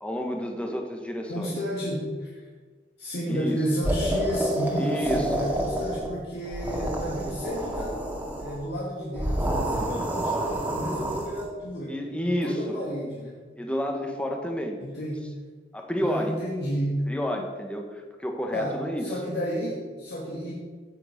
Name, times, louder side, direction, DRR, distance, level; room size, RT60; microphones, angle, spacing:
voice 1, 0.0-1.5 3.3-3.6 4.7-5.4 11.9-12.8 13.6-14.8 15.7-16.4 17.1-19.1, equal, 5° left, 2 dB, 1.5 m, -30 dB
voice 2, 1.3-2.5 3.0-8.0 8.4-12.0 12.2-13.5 14.8-15.3 16.0-17.0 18.5-20.5, equal, 60° left, -5 dB, 2.6 m, -31 dB
sound 1, 3.8-6.1 6.4-8.6 9.1-11.4, right 1 dB, 10° right, 2.1 m, -29 dB
15.5 x 7.8 x 5.3 m, 1.5 s
head